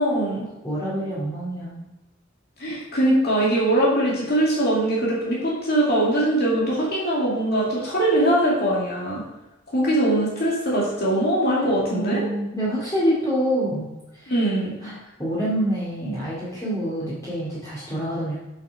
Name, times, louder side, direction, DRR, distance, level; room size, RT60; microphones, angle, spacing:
voice 1, 0.0-0.5 2.6-9.2 9.7-12.2 14.3-14.7, right 1 dB, 55° left, -5 dB, 2.3 m, -21 dB
voice 2, 0.6-1.8 11.5-13.9 14.2-14.3 14.8-18.4, equal, 20° left, -9 dB, 2.2 m, -26 dB
8.2 x 5.7 x 4.7 m, 1.0 s
head